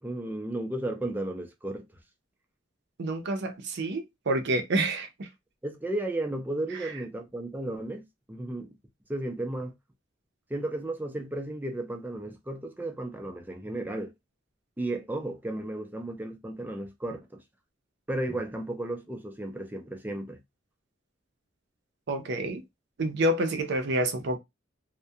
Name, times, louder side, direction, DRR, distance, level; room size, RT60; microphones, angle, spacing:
voice 1, 0.0-1.9 5.6-8.7 9.1-9.7 10.5-14.1 14.8-17.4 18.1-20.4, right 1 dB, 10° right, 0.4 m, -34 dB
voice 2, 3.0-5.3 6.8-6.9 22.1-22.6 23.0-24.4, right 1 dB, 65° right, 0.5 m, -28 dB
2.2 x 2.1 x 2.7 m
head